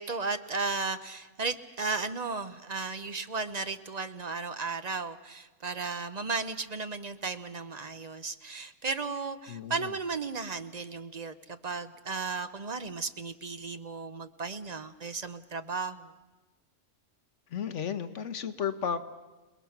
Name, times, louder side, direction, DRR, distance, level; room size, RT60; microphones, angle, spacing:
voice 1, 0.0-16.1, right 4 dB, 40° right, 11 dB, 0.8 m, -35 dB
voice 2, 9.5-9.9 17.5-19.0, left 7 dB, 70° left, 10 dB, 1.3 m, -33 dB
29.0 x 20.0 x 5.9 m, 1.1 s
omnidirectional pair, 1.3 m